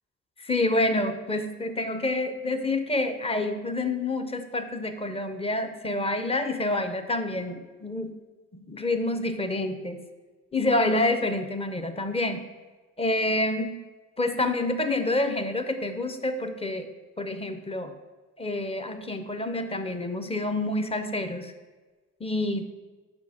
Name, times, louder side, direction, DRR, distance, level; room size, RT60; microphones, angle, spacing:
voice 1, 0.4-8.2 8.5-10.0 10.5-12.5 13.0-13.8 14.2-16.9 17.2-17.9 18.4-21.5 22.2-22.6, left 2 dB, 20° left, 9 dB, 0.6 m, -28 dB
6.0 x 5.2 x 4.8 m, 1.3 s
cardioid pair, 90°, 29 cm